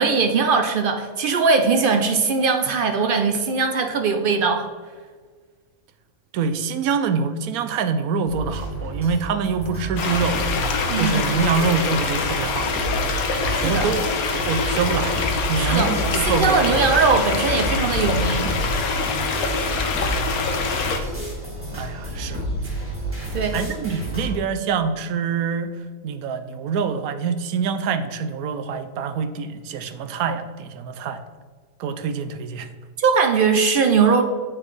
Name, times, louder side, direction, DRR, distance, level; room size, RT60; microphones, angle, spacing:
voice 1, 0.0-4.7 10.9-11.3 13.5-13.9 15.5-18.5 23.3-23.6 33.0-34.2, right 5 dB, 65° right, 6 dB, 0.5 m, -20 dB
voice 2, 6.3-10.4 11.0-12.7 13.4-14.0 14.3-15.2 15.5-16.6 21.7-22.4 23.5-25.7 26.0-31.2 31.8-32.7, right 5 dB, 90° right, 10 dB, 1.1 m, -25 dB
sound 1, 8.2-24.4, right 1 dB, 10° right, 1.9 m, -30 dB
sound 2, 10.0-21.0, left 4 dB, 85° left, 1.2 m, -25 dB
7.3 x 5.9 x 3.2 m, 1.5 s
omnidirectional pair, 1.5 m